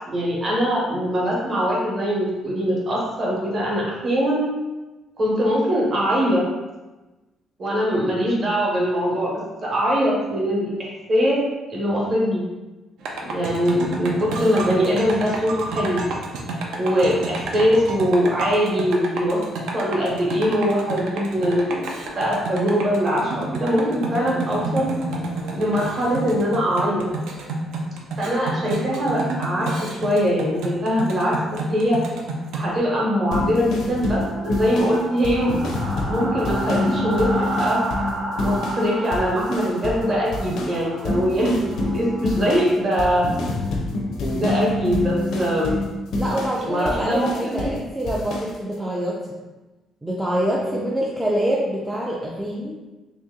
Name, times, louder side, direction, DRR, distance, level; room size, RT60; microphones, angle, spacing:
voice 1, 0.1-4.5 5.2-6.4 7.6-10.7 11.1-11.4 11.7-12.4 13.3-16.1 16.7-19.4 19.7-21.8 22.1-24.9 25.5-27.1 28.2-32.0 32.5-35.5 36.0-37.8 38.4-43.3 44.3-45.8 46.6-47.7 50.6-50.8, equal, 30° right, -4 dB, 0.9 m, -22 dB
sound 1, 13.0-32.8, right 2 dB, 75° right, 0.5 m, -30 dB
sound 2, 33.3-38.9 39.1-40.1 40.3-47.8 48.1-48.5, left 2 dB, 60° left, 0.5 m, -27 dB
sound 3, 33.9-42.7, right 2 dB, 90° right, 1.1 m, -32 dB
voice 2, 46.1-49.2 50.0-52.8, right 1 dB, 5° right, -5 dB, 0.3 m, -25 dB
3.0 x 2.8 x 3.6 m, 1.1 s
cardioid pair, 175°, 0 cm